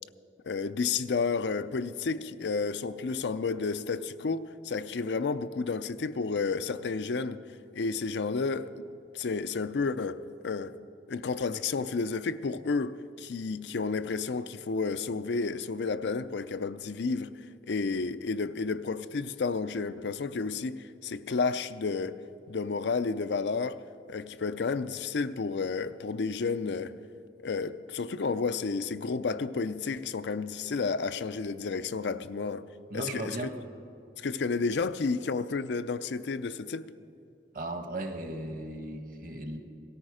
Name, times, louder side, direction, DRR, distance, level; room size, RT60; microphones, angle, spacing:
voice 1, 0.5-7.4 7.7-8.7 9.1-10.7 11.1-17.3 17.7-22.2 22.5-23.8 24.1-27.0 27.4-32.6 32.9-33.4 34.2-36.9, left 4 dB, 80° left, 0.5 m, -31 dB
voice 2, 32.9-33.5 37.5-39.6, right 1 dB, 50° right, 1.3 m, -36 dB
17.5 x 13.0 x 4.9 m
head